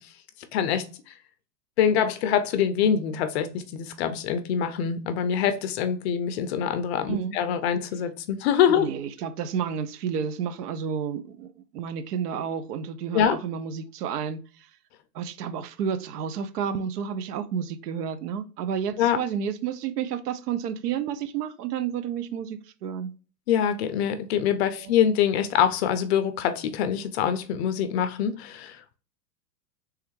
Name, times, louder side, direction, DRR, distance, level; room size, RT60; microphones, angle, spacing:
voice 1, 0.5-0.8 1.8-8.9 13.1-13.4 19.0-19.2 23.5-29.0, left 8 dB, 45° left, 0.4 m, -24 dB
voice 2, 8.7-14.4 15.1-23.1 24.8-24.9, right 7 dB, 70° right, 0.6 m, -31 dB
3.5 x 3.2 x 3.0 m
hypercardioid pair, 130°, 48 cm